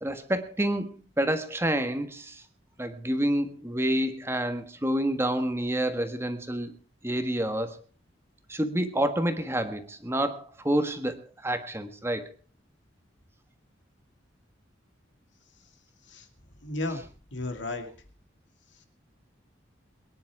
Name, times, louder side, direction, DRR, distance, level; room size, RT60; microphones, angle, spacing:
voice 1, 0.0-2.4 2.8-6.7 7.0-7.8 8.5-11.2 11.4-12.3, right 1 dB, 15° right, 8 dB, 1.5 m, -28 dB
voice 2, 16.6-17.0 17.3-17.9, left 2 dB, 70° left, 5 dB, 2.5 m, -33 dB
23.0 x 10.5 x 4.8 m, 0.39 s
head